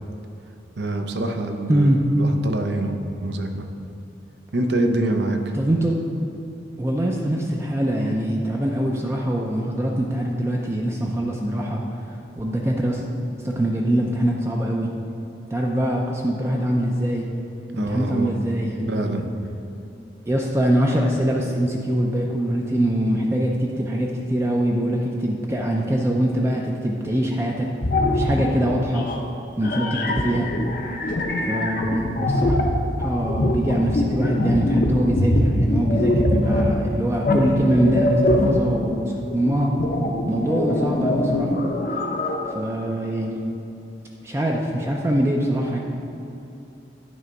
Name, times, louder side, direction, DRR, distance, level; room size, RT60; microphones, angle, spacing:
voice 1, 0.8-1.9 2.2-2.9 3.2-3.7 4.5-5.5 17.8-18.4 18.9-19.3, right 1 dB, 70° right, 5 dB, 0.6 m, -25 dB
voice 2, 1.7-2.0 5.5-6.0 6.8-11.8 12.4-13.0 13.4-14.9 15.5-17.3 17.7-19.2 20.3-27.7 28.1-29.1 29.6-30.5 31.5-32.6 33.0-39.7 40.3-41.5 42.4-43.4 44.2-45.8, right 1 dB, 15° right, -1 dB, 0.4 m, -23 dB
sound 1, 27.8-28.5 28.9-29.2 29.6-36.8 37.2-42.5, left 1 dB, 50° left, 0.6 m, -23 dB
9.4 x 3.3 x 5.2 m, 2.9 s
head